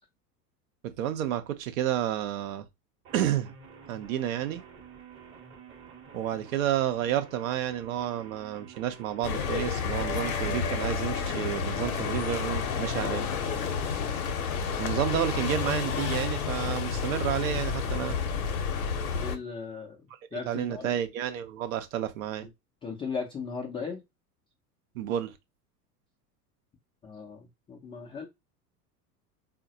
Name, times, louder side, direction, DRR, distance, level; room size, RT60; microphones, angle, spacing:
voice 1, 0.8-2.7 3.1-3.5 3.9-4.6 6.1-13.3 14.8-18.2 20.3-22.5 24.9-25.4, right 11 dB, 55° right, 0.7 m, -30 dB
sound 1, 3.0-16.0, right 6 dB, 25° right, 0.9 m, -51 dB
sound 2, 9.2-19.4, left 6 dB, 60° left, 0.7 m, -30 dB
voice 2, 19.1-20.0 20.3-20.9 22.8-24.0 27.0-28.3, left 5 dB, 10° left, 0.4 m, -37 dB
3.7 x 2.1 x 2.7 m
figure-of-eight pair, 80°, 49 cm